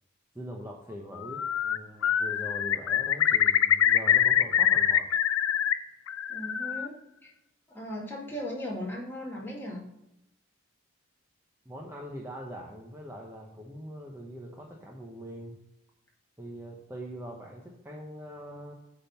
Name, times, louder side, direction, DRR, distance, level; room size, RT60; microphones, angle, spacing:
voice 1, 0.3-5.1 11.6-15.6 16.4-18.7, equal, 10° right, -1 dB, 0.8 m, -42 dB
Bird, 1.2-1.8 2.0-5.7 6.1-6.9, left 10 dB, 80° left, 0.4 m, -24 dB
voice 2, 6.3-6.9 7.2-7.3 7.7-9.9, equal, 10° left, -3 dB, 2.0 m, -37 dB
8.7 x 3.7 x 6.6 m, 0.85 s
head